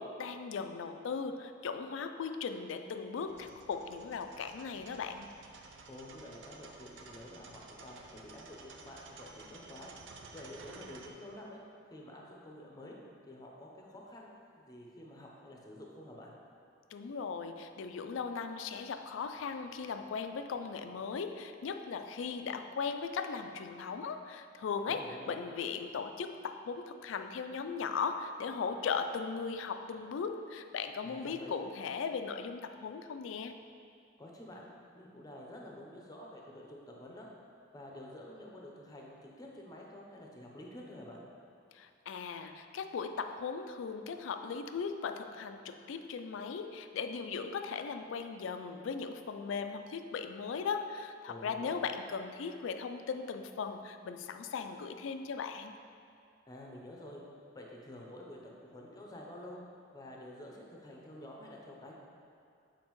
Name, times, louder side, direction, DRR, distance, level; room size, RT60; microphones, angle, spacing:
voice 1, 0.0-5.3 16.9-33.6 41.7-55.7, left 5 dB, 80° left, 8 dB, 0.3 m, -38 dB
sound 1, 3.3-11.1, right 3 dB, 70° right, 0.5 m, -53 dB
voice 2, 5.9-13.0 13.2-16.3 24.9-25.3 31.0-31.6 34.2-37.3 37.7-41.2 51.3-51.8 56.5-57.2 57.5-59.6 59.9-61.9, left 1 dB, 20° left, -1 dB, 0.7 m, -49 dB
7.4 x 4.4 x 3.1 m, 2.4 s
head